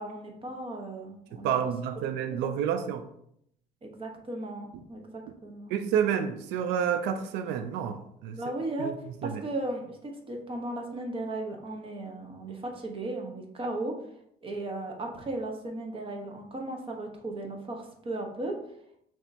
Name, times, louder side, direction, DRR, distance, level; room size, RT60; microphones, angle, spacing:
voice 1, 0.0-1.7 2.4-2.5 3.8-5.7 8.3-8.9 9.2-13.9 14.4-18.6, right 2 dB, 30° right, 2 dB, 1.1 m, -36 dB
voice 2, 1.3-3.1 5.7-8.4 8.8-8.9 9.2-9.4, right 8 dB, 90° right, 8 dB, 0.4 m, -29 dB
6.1 x 3.0 x 2.7 m, 0.71 s
cardioid pair, 110°, 17 cm